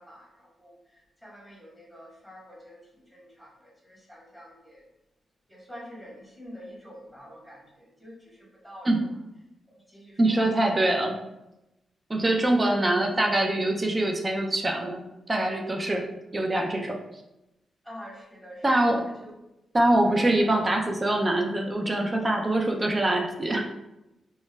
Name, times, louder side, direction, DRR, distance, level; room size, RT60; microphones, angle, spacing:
voice 1, 0.0-4.8 5.5-8.9 9.7-10.4 12.1-13.0 17.8-19.4 20.0-20.3, equal, 5° right, -5 dB, 1.0 m, -47 dB
voice 2, 10.2-11.2 12.1-17.0 18.6-19.0 19.7-23.7, right 1 dB, 25° right, 2 dB, 0.3 m, -24 dB
2.2 x 2.0 x 3.1 m, 0.94 s
cardioid pair, 95°, 0 cm